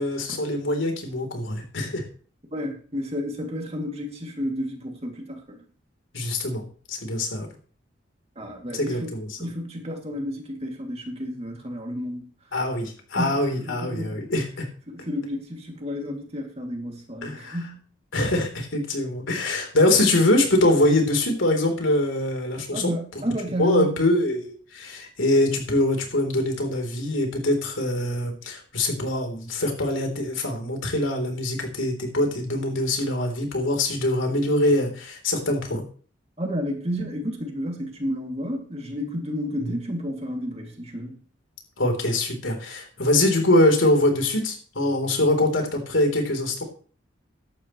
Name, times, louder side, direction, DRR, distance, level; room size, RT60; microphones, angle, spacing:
voice 1, 0.0-2.0 6.1-7.5 8.7-9.5 12.5-14.7 17.2-17.6 18.1-22.9 23.6-35.8 41.8-46.6, left 1 dB, 85° left, 3.7 m, -23 dB
voice 2, 2.5-5.6 8.4-9.1 9.4-12.3 13.2-14.3 14.9-17.8 22.7-24.0 36.4-41.2, equal, 30° right, 2.7 m, -31 dB
15.0 x 11.5 x 3.2 m
head